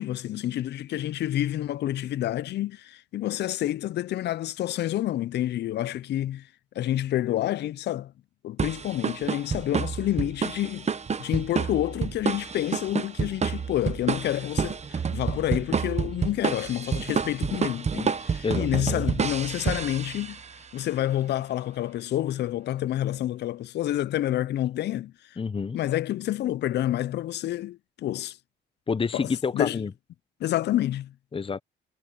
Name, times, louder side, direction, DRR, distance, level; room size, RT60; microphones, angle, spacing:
voice 1, 0.0-6.5 6.8-8.1 8.4-10.9 11.2-20.4 20.7-25.1 25.7-28.4 29.1-29.8 30.4-31.1, left 13 dB, 60° left, 0.4 m, -28 dB
sound 1, 8.6-20.5, right 6 dB, 35° right, 1.0 m, -29 dB
voice 2, 18.4-19.0 25.4-25.8 28.9-29.9 31.3-31.6, left 5 dB, 25° left, 0.9 m, -28 dB
cardioid pair, 90°, 20 cm